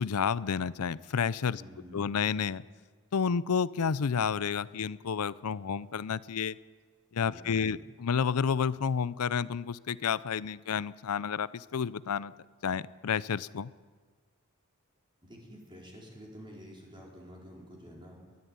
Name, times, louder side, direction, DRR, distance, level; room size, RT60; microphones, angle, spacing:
voice 1, 0.0-1.6 1.9-2.6 3.1-6.6 7.1-12.3 12.6-13.7, left 6 dB, 90° left, 19 dB, 0.5 m, -30 dB
voice 2, 1.5-2.2 7.2-7.8 15.2-18.2, equal, 20° right, -2 dB, 4.6 m, -49 dB
21.0 x 12.5 x 9.6 m, 1.5 s
head